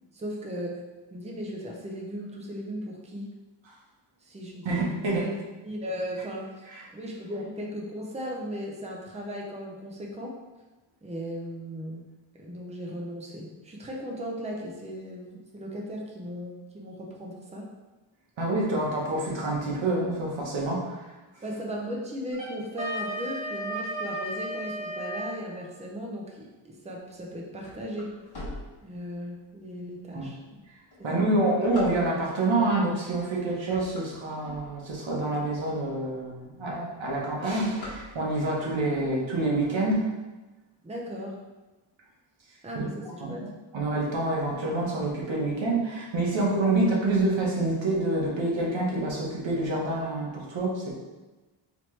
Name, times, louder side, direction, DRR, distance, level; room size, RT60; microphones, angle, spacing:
voice 1, 0.1-0.8 1.1-3.3 4.2-6.7 6.9-10.4 11.0-12.1 12.4-17.7 18.7-18.8 21.4-28.2 28.8-30.4 31.2-31.4 40.8-41.4 42.6-43.5, equal, 15° right, -1 dB, 0.5 m, -37 dB
voice 2, 4.6-5.2 18.4-21.1 30.1-30.3 31.0-40.1 42.7-42.9 43.2-43.5 43.7-50.9, right 2 dB, 70° right, -4 dB, 1.1 m, -27 dB
Wind instrument woodwind instrument, 22.3-25.4, right 1 dB, 40° right, 1.3 m, -34 dB
sound 1, 27.2-29.4 30.0-30.1 30.7-32.5 33.1-33.3 33.6-35.1 35.6-35.7 36.0-36.1 36.4-36.7 37.0-38.6, left 1 dB, 50° left, 1.2 m, -43 dB
4.1 x 3.0 x 3.1 m, 1.2 s
wide cardioid pair, 170°, 48 cm